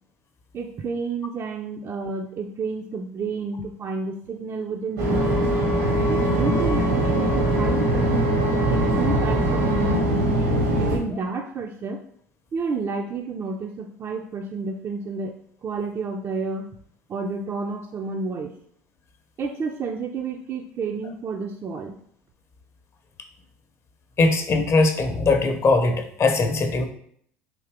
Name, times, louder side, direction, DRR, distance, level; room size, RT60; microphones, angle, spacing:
voice 1, 0.5-5.4 6.1-10.4 10.7-12.0 12.5-15.4 15.6-16.7 17.1-18.5 19.4-22.0, right 4 dB, 35° right, 3 dB, 0.4 m, -30 dB
sound 1, 5.0-11.0, right 1 dB, 85° right, 1.2 m, -21 dB
voice 2, 24.2-26.9, left 3 dB, 35° left, 6 dB, 0.6 m, -20 dB
3.7 x 2.7 x 3.4 m, 0.64 s
hypercardioid pair, 70°, 8 cm